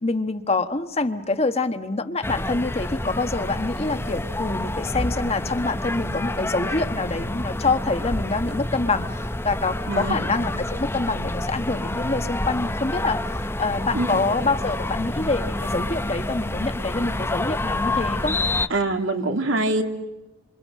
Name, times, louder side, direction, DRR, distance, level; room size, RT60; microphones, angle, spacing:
voice 1, 0.0-9.1 9.4-18.4, left 3 dB, 30° left, 9 dB, 1.2 m, -26 dB
sound 1, 2.2-18.7, left 1 dB, 10° left, 0.8 m, -28 dB
voice 2, 9.9-10.3 13.9-14.2 18.7-19.8, right 2 dB, 85° right, 5 dB, 2.6 m, -24 dB
27.5 x 27.5 x 7.5 m, 1.1 s
head